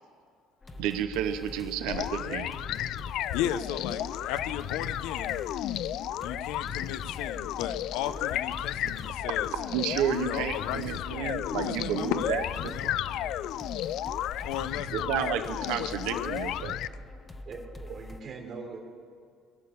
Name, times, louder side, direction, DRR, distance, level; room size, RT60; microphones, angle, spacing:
sound 1, 0.6-18.2, left 1 dB, 20° left, 1.0 m, -44 dB
voice 1, 0.8-2.5 9.7-12.7 14.9-16.8, right 9 dB, 90° right, 9 dB, 0.8 m, -31 dB
sound 2, 1.9-16.9, left 12 dB, 65° left, 0.3 m, -33 dB
voice 2, 3.3-5.4 6.2-9.5 10.1-13.5 14.4-16.3, left 11 dB, 90° left, 11 dB, 0.7 m, -36 dB
voice 3, 17.4-18.8, right 4 dB, 50° right, -3 dB, 2.8 m, -41 dB
21.0 x 7.0 x 8.5 m, 2.1 s
cardioid pair, 120°, 0 cm